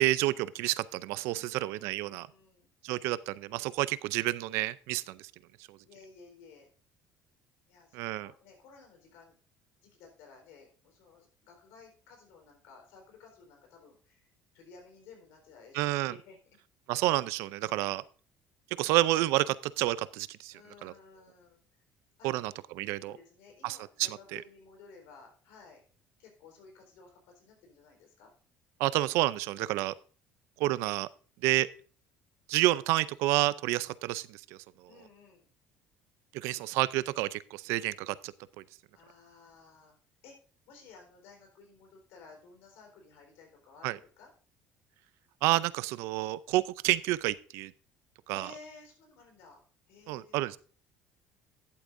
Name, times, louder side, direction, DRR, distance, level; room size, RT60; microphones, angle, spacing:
voice 1, 0.0-2.3 2.8-5.2 5.7-5.8 7.9-8.3 15.7-16.1 16.9-18.0 18.8-20.5 20.8-20.9 22.2-23.1 23.6-23.8 24.3-24.4 28.8-29.9 30.6-31.1 31.4-31.7 32.5-34.4 36.3-38.3 43.8-44.0 45.4-47.7 48.3-48.5 50.1-50.6, right 17 dB, 80° right, 18 dB, 0.4 m, -29 dB
voice 2, 1.3-2.7 5.8-6.7 7.7-9.4 9.8-14.3 14.5-16.6 20.5-21.6 22.2-22.6 23.0-25.8 26.2-28.3 34.9-35.5 38.9-40.0 40.2-40.4 40.7-44.3 48.3-49.6 49.9-50.5, left 4 dB, 80° left, 2 dB, 3.9 m, -55 dB
11.5 x 8.0 x 2.6 m, 0.41 s
supercardioid pair, 100°, 5 cm